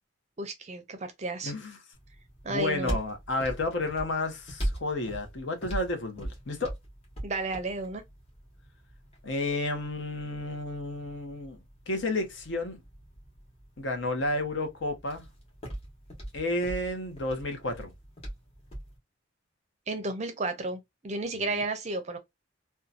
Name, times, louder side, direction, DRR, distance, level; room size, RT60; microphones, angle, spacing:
voice 1, 0.4-1.5 2.4-3.0 7.2-8.0 19.9-22.2, right 2 dB, 35° right, 0.5 m, -33 dB
voice 2, 1.4-1.8 2.5-6.7 9.2-12.8 13.8-15.2 16.3-17.9 21.3-21.5, left 2 dB, 65° left, 0.8 m, -31 dB
sound 1, 1.9-19.0, right 1 dB, 30° left, 1.1 m, -41 dB
2.7 x 2.2 x 2.3 m
head